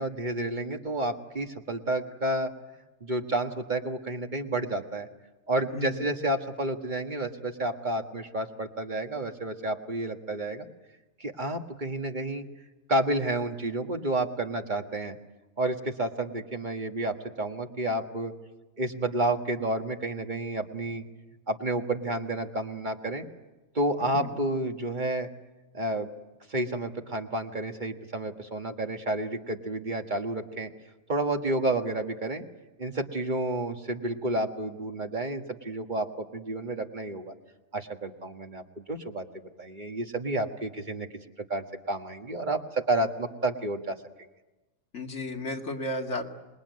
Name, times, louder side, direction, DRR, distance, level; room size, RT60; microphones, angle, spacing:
voice 1, 0.0-2.5 3.0-5.1 5.5-10.7 11.2-12.4 12.9-15.2 15.6-18.3 18.8-21.0 21.5-23.3 23.7-25.3 25.7-26.1 26.5-30.7 31.1-32.4 32.8-37.3 37.7-41.1 41.5-44.0, right 1 dB, 40° right, 5 dB, 1.7 m, -30 dB
voice 2, 5.7-6.1 24.1-24.3 44.9-46.3, left 1 dB, 65° left, 2 dB, 2.4 m, -33 dB
26.5 x 21.0 x 9.4 m, 1.1 s
omnidirectional pair, 1.3 m